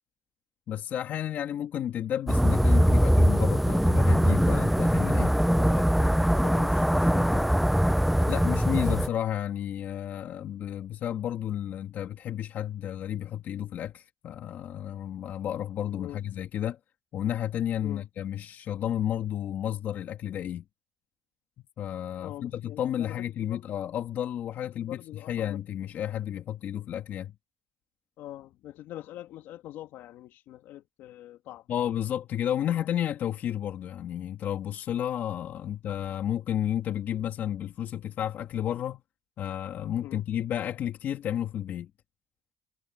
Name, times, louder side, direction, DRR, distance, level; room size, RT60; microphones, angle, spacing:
voice 1, 0.7-5.4 8.3-16.8 17.1-20.6 21.8-27.3 31.7-39.0 39.4-41.9, left 10 dB, 55° left, 2.0 m, -32 dB
sound 1, 2.3-9.1, equal, ahead, 0.5 m, -22 dB
voice 2, 5.5-7.5 16.0-16.2 17.8-18.0 22.2-23.2 23.5-23.6 24.7-25.6 28.2-31.6 40.0-40.2, left 13 dB, 70° left, 2.4 m, -43 dB
cardioid pair, 110°, 4 cm